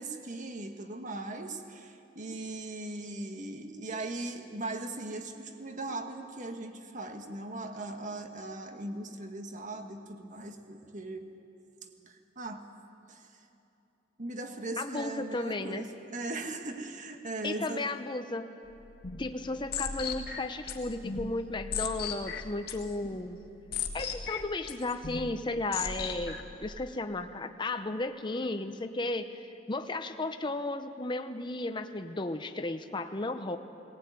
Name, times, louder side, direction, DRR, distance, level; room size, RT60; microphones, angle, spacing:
voice 1, 0.0-11.3 12.0-12.6 13.1-13.2 14.2-17.8, right 2 dB, 45° right, 6 dB, 1.5 m, -39 dB
voice 2, 14.8-15.9 17.4-18.5 19.2-23.4 23.9-33.6, left 2 dB, 25° left, 7 dB, 0.8 m, -34 dB
sound 1, 18.7-26.6, left 6 dB, 55° left, 1.6 m, -38 dB
18.5 x 18.0 x 9.4 m, 2.9 s
head